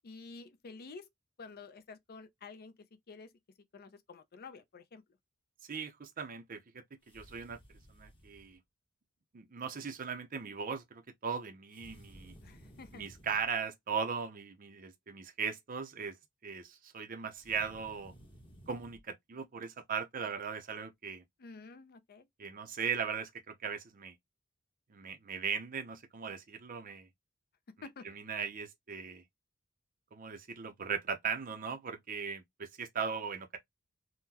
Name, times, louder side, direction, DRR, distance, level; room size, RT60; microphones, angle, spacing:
voice 1, 0.0-1.1 1.4-2.7 3.1-3.3 3.7-5.0 12.4-13.0 21.4-22.3 27.8-28.1, left 4 dB, 45° left, 0.5 m, -50 dB
voice 2, 5.7-6.6 7.1-7.6 7.9-8.6 9.3-12.3 12.9-16.2 16.4-18.1 18.7-21.2 22.4-24.1 24.9-27.1 28.0-29.2 30.1-33.6, right 6 dB, 40° right, 0.5 m, -38 dB
sound 1, 7.0-8.5 11.7-13.5 17.3-19.0, equal, 25° left, 1.0 m, -56 dB
3.7 x 2.1 x 2.8 m
head